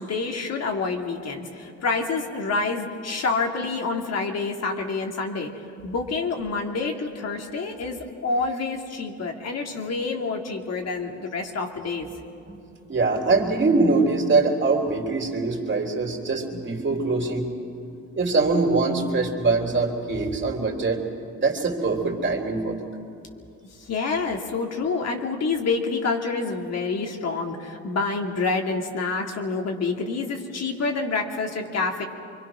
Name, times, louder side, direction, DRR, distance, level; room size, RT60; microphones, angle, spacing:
voice 1, 0.0-5.5 5.8-12.1 23.8-32.0, left 4 dB, 60° left, 2 dB, 2.6 m, -27 dB
voice 2, 12.9-17.5 18.2-21.0 21.4-22.8, right 3 dB, 40° right, 2 dB, 3.6 m, -23 dB
25.5 x 23.5 x 6.2 m, 2.5 s
cardioid pair, 90°, 30 cm